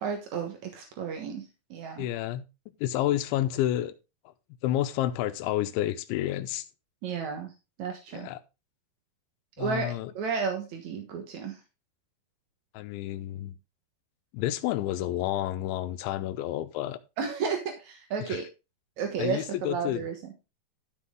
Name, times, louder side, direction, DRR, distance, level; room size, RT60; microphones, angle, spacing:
voice 1, 0.0-1.4 1.7-2.1 7.0-7.5 7.8-8.3 9.6-11.6 17.2-18.5 19.0-20.1, right 6 dB, 70° right, 1.8 m, -32 dB
voice 2, 2.0-2.4 2.8-3.9 4.3-4.4 4.6-6.7 8.1-8.4 9.6-10.1 12.7-13.6 14.3-17.0 18.2-18.4 19.2-20.1, left 13 dB, 85° left, 3.1 m, -30 dB
12.5 x 6.3 x 3.7 m
omnidirectional pair, 5.3 m